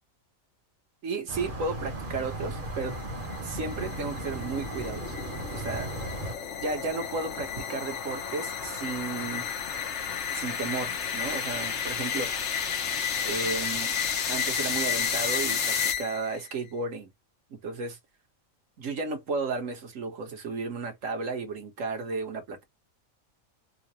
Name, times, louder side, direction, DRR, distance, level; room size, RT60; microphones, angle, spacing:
voice 1, 1.0-3.0 3.4-5.1 5.5-5.9 6.6-9.5 10.3-12.7 13.2-14.0 14.3-17.1 17.5-18.0 18.8-22.6, right 3 dB, 75° right, 1.5 m, -33 dB
sound 1, 1.3-6.3, right 2 dB, 45° right, 1.1 m, -37 dB
sound 2, 1.6-16.4, left 7 dB, 60° left, 1.2 m, -32 dB
3.8 x 2.5 x 2.9 m
omnidirectional pair, 1.4 m